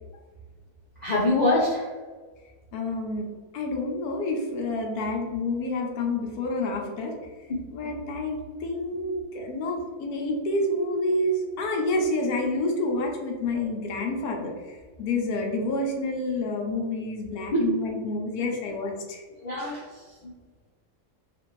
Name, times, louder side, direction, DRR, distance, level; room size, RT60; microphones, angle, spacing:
voice 1, 1.0-1.9 7.5-7.6 17.5-17.7 19.4-20.3, left 2 dB, 60° left, -7 dB, 0.4 m, -25 dB
voice 2, 2.7-3.3 3.5-7.2 7.7-19.2, left 2 dB, 80° left, 1 dB, 1.1 m, -28 dB
3.3 x 2.5 x 3.0 m, 1.4 s
omnidirectional pair, 1.6 m